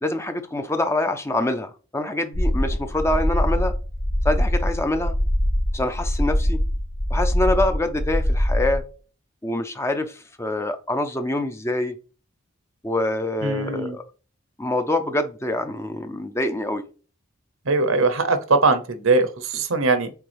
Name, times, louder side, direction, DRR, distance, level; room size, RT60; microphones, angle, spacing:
voice 1, 0.0-3.7 4.2-5.2 5.7-6.6 7.1-8.8 9.4-11.9 12.8-14.0 14.6-16.8, left 1 dB, 10° left, 7 dB, 0.5 m, -25 dB
sound 1, 2.3-8.8, equal, 60° left, 2.3 m, -23 dB
voice 2, 13.4-14.0 17.7-20.1, right 3 dB, 75° right, 10 dB, 0.8 m, -21 dB
7.9 x 3.4 x 3.4 m, 0.37 s
head